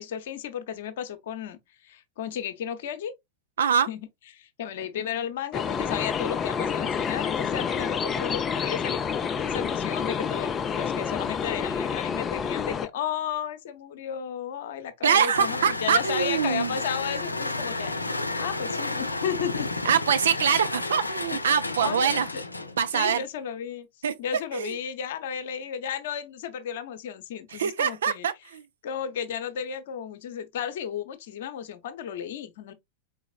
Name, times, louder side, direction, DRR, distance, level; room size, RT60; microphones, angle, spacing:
voice 1, 0.0-3.1 3.9-4.1 4.3-17.9 18.4-19.7 21.8-22.4 22.9-23.9 24.2-28.3 28.8-32.7, left 8 dB, 55° left, 0.8 m, -34 dB
voice 2, 3.6-3.9 15.0-16.8 19.8-22.3 22.8-23.2 24.0-24.1 24.5-24.7 27.5-28.6, right 8 dB, 65° right, 0.5 m, -24 dB
sound 1, 5.5-12.9, left 6 dB, 25° left, 0.4 m, -28 dB
sound 2, 15.3-23.0, left 2 dB, 80° left, 0.5 m, -31 dB
4.8 x 3.9 x 2.3 m
figure-of-eight pair, 90°, 0 cm